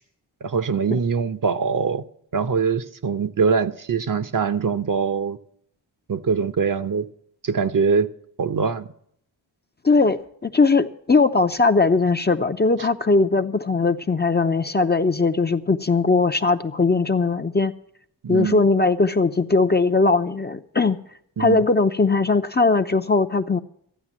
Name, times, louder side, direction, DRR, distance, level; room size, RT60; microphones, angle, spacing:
voice 1, 0.4-2.0 2.3-5.4 6.1-7.1 7.4-8.1 8.4-8.9 18.2-18.6 21.4-21.6, right 5 dB, 45° right, 0.8 m, -23 dB
voice 2, 9.8-17.7 18.3-21.0 21.4-23.6, left 3 dB, 25° left, 0.6 m, -19 dB
13.5 x 8.9 x 7.3 m
cardioid pair, 55°, 45 cm